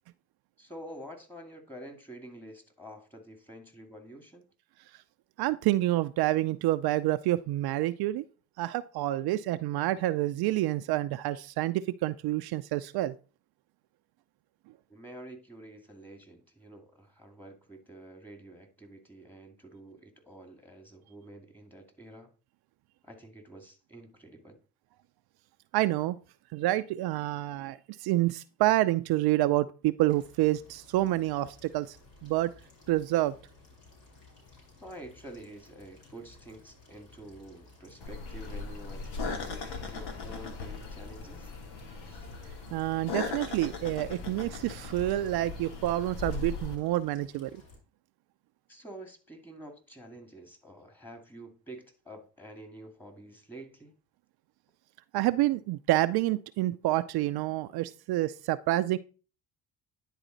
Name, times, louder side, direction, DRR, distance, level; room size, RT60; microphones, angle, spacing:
voice 1, 0.6-4.5 14.9-22.3 23.0-24.6 34.8-41.5 42.0-42.3 48.7-53.9, right 1 dB, 5° left, 2.3 m, -48 dB
voice 2, 5.4-8.2 8.6-13.1 25.7-26.2 26.5-32.0 32.2-32.5 32.9-33.3 42.7-47.6 55.1-59.0, right 16 dB, 65° right, 0.5 m, -28 dB
sound 1, 30.0-47.8, left 2 dB, 60° left, 4.4 m, -56 dB
sound 2, 38.0-46.8, left 4 dB, 75° left, 1.6 m, -38 dB
10.0 x 4.1 x 4.0 m
supercardioid pair, 60°, 40 cm